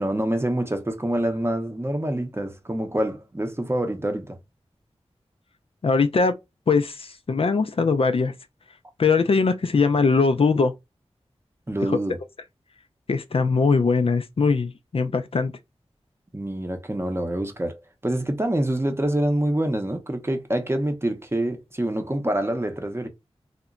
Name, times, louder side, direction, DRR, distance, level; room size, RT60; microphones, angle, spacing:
voice 1, 0.0-4.4 11.7-12.2 16.3-23.1, right 1 dB, 20° right, 0.7 m, -26 dB
voice 2, 5.8-6.3 6.7-8.3 9.0-10.7 11.9-12.0 13.1-15.5, left 4 dB, 55° left, 0.4 m, -21 dB
2.8 x 2.2 x 2.3 m
cardioid pair, 45°, 11 cm